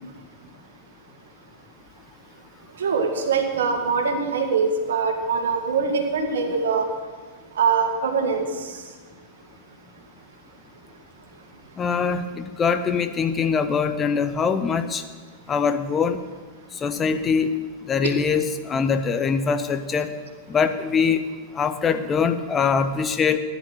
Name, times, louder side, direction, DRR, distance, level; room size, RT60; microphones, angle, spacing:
voice 1, 2.8-6.9 7.6-8.5, right 5 dB, 65° right, 5 dB, 2.0 m, -23 dB
voice 2, 11.8-15.0 15.5-16.2 16.8-17.5 17.9-20.1 20.5-21.2 21.5-23.4, left 6 dB, 20° left, 9 dB, 0.9 m, -23 dB
15.5 x 10.5 x 6.4 m, 1.4 s
figure-of-eight pair, 90°, 0 cm